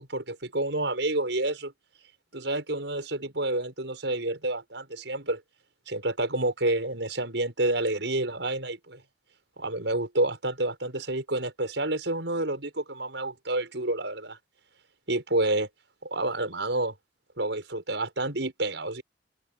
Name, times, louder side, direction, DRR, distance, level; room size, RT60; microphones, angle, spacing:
voice 1, 0.0-1.7 2.3-5.4 5.9-9.0 9.6-14.4 15.1-15.7 16.0-16.9 17.4-19.0, right 2 dB, 75° right, 6.1 m, -29 dB
open air
head